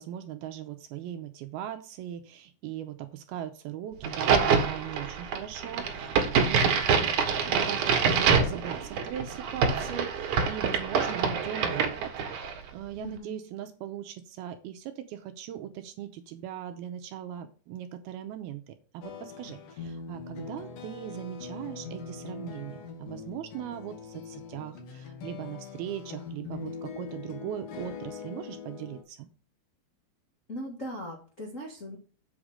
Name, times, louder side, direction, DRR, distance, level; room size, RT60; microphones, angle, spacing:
voice 1, 0.0-7.1 7.4-12.1 12.7-29.3, right 11 dB, 80° right, 7 dB, 2.3 m, -39 dB
Crack, 4.0-12.6, right 6 dB, 60° right, 2.4 m, -26 dB
voice 2, 13.0-13.4 30.5-32.0, equal, 85° left, -2 dB, 0.7 m, -39 dB
sound 1, 19.0-29.0, left 5 dB, 65° left, 2.7 m, -42 dB
8.1 x 5.0 x 6.4 m, 0.38 s
omnidirectional pair, 4.9 m